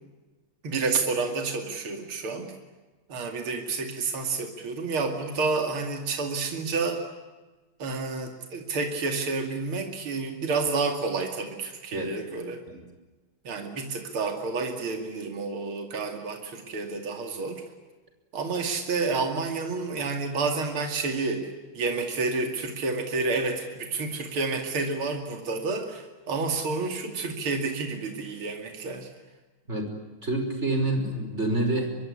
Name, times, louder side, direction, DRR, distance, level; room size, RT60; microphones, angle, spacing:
voice 1, 0.6-2.5 3.1-7.0 7.8-12.6 13.4-17.6 18.3-29.1, right 4 dB, 75° right, 4 dB, 3.3 m, -29 dB
voice 2, 30.2-32.0, right 2 dB, 30° right, 5 dB, 5.6 m, -27 dB
25.0 x 23.0 x 9.8 m, 1.2 s
omnidirectional pair, 2.4 m